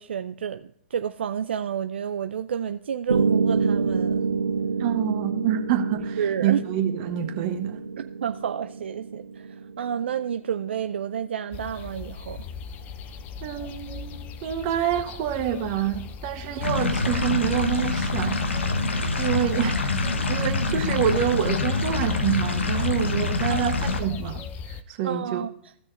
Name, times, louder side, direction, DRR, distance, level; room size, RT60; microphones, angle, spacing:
voice 1, 0.0-4.2 6.2-6.6 8.0-12.5 23.5-23.7 25.0-25.8, right 8 dB, 65° right, 0.4 m, -30 dB
Piano, 3.1-11.2, right 5 dB, 90° right, 0.9 m, -28 dB
voice 2, 4.8-7.8 13.4-18.7 19.2-19.9 20.3-25.4, right 9 dB, 40° right, 1.5 m, -27 dB
sound 1, 11.5-24.8, left 7 dB, 25° left, 0.7 m, -38 dB
sound 2, 16.6-24.0, left 3 dB, 80° left, 1.3 m, -25 dB
15.5 x 6.2 x 3.2 m
hypercardioid pair, 120°, 6 cm